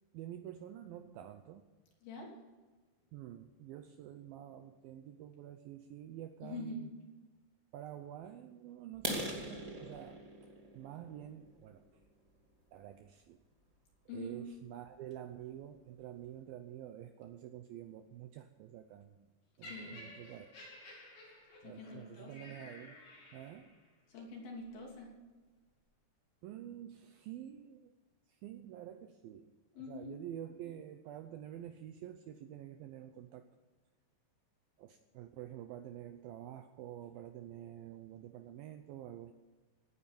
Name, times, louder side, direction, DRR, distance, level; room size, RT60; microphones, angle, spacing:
voice 1, 0.1-1.6 3.1-6.9 7.7-10.2 10.7-11.9 12.7-13.4 14.1-19.3 19.6-20.5 21.6-23.0 23.3-23.8 26.4-27.9 28.3-33.5 34.8-39.3, right 11 dB, 80° right, 8 dB, 2.2 m, -48 dB
voice 2, 6.4-6.8 14.1-14.4 19.6-20.1 21.6-22.5 24.1-25.1 29.8-30.2, left 2 dB, 60° left, 0 dB, 4.7 m, -45 dB
sound 1, 8.9-12.7 13.2-13.4 13.9-14.0 14.4-14.6 14.9-15.0 15.4-15.5 15.7-16.2, equal, 20° right, 0.9 m, -42 dB
Laughter, 19.6-23.9 24.7-24.8, left 1 dB, 80° left, 7.6 m, -53 dB
17.5 x 9.4 x 7.0 m, 1.3 s
omnidirectional pair, 4.9 m